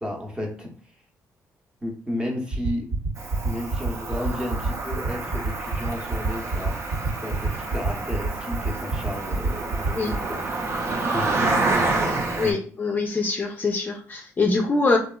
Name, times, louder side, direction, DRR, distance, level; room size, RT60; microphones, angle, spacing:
voice 1, 0.0-0.7 1.8-2.9 3.4-10.4 11.1-12.5, left 1 dB, 15° right, 0 dB, 0.7 m, -33 dB
sound 1, 2.5-10.2, right 4 dB, 70° right, 1.2 m, -26 dB
Cricket, 3.2-12.5, right 3 dB, 45° right, 0.5 m, -28 dB
voice 2, 12.4-15.0, left 3 dB, 30° left, 1 dB, 0.5 m, -24 dB
2.7 x 2.4 x 2.2 m, 0.43 s
cardioid pair, 75°, 6 cm